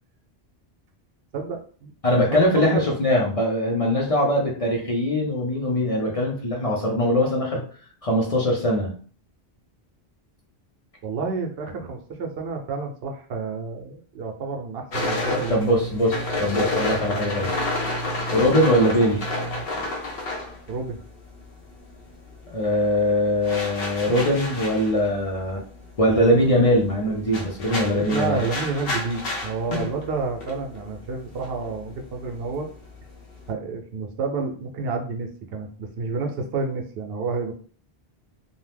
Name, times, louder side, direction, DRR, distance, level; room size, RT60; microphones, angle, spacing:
voice 1, 1.3-1.9 2.3-2.8 11.0-15.8 20.7-21.0 27.9-32.7 33.5-37.5, right 4 dB, 75° right, 3 dB, 0.8 m, -30 dB
voice 2, 2.0-7.6 8.0-9.0 15.5-17.5 18.3-19.2 22.5-25.6 26.0-28.4, equal, 40° left, -1 dB, 0.6 m, -21 dB
sound 1, 14.9-21.6 21.9-33.5, left 1 dB, 70° left, 0.9 m, -30 dB
2.7 x 2.0 x 3.3 m, 0.43 s
omnidirectional pair, 1.0 m